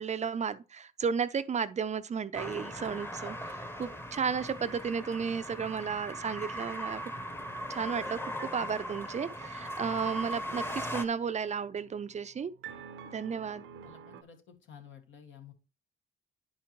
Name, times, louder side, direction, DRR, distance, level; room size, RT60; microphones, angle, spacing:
voice 1, 0.0-7.0 7.7-12.5 13.1-13.6, right 6 dB, 35° right, 0.5 m, -33 dB
sound 1, 2.3-11.0, equal, 10° left, 0.9 m, -39 dB
sound 2, 6.4-14.2, right 8 dB, 80° right, 0.7 m, -52 dB
voice 2, 13.8-15.5, left 8 dB, 75° left, 1.8 m, -52 dB
10.0 x 5.1 x 3.0 m
cardioid pair, 90°, 20 cm